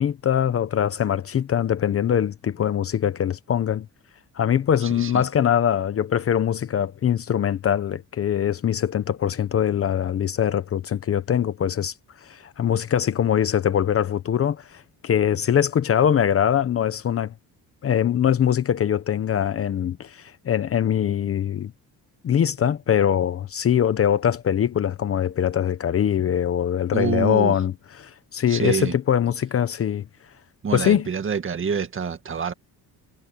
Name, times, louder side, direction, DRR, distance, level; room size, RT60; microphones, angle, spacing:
voice 1, 0.0-3.9 4.4-11.9 12.3-17.3 17.8-21.7 22.2-30.0 30.7-31.1, left 9 dB, 40° left, 0.8 m, -22 dB
voice 2, 4.8-5.2 26.9-27.6 28.5-29.0 30.6-32.5, right 6 dB, 35° right, 2.0 m, -27 dB
cardioid pair, 150°, 37 cm